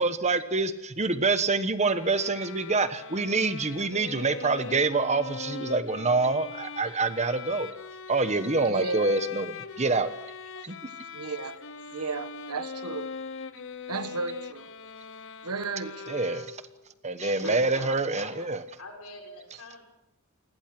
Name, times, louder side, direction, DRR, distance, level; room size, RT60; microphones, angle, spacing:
voice 1, 0.0-7.7 8.1-10.1 10.6-10.7 16.1-16.6 17.0-18.6, right 3 dB, 30° right, 1.2 m, -26 dB
Violin - G major, 1.9-16.9, left 5 dB, 60° left, 1.1 m, -41 dB
voice 2, 8.6-9.1 10.6-10.7 11.1-11.6 11.9-13.1 13.9-14.7 15.4-16.2 17.4-17.9, right 3 dB, 90° right, 1.5 m, -34 dB
voice 3, 17.2-18.5 18.8-19.8, left 3 dB, 75° left, 6.5 m, -44 dB
28.5 x 20.5 x 6.1 m
head